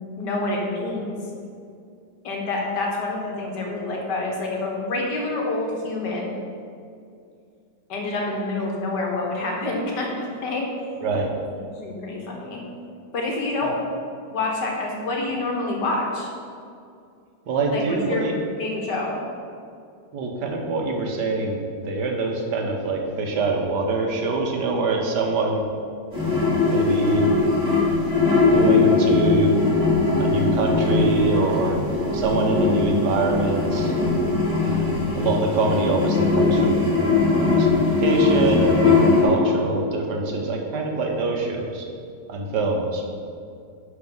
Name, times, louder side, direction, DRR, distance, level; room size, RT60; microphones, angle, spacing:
voice 1, 0.2-1.2 2.2-6.3 7.9-10.7 11.7-12.6 13.1-13.8 14.3-16.3 17.7-17.8 18.1-18.3 18.6-19.2 39.2-39.6, left 2 dB, 75° left, -1 dB, 2.0 m, -27 dB
voice 2, 17.5-18.3 20.1-25.6 26.7-27.3 28.4-29.5 30.2-31.8 32.1-33.9 34.6-36.9 37.4-41.8 42.3-43.0, right 3 dB, 75° right, 2 dB, 1.6 m, -24 dB
sound 1, 26.1-39.2, left 3 dB, 20° right, 2.2 m, -20 dB
11.0 x 4.1 x 5.4 m, 2.4 s
omnidirectional pair, 1.9 m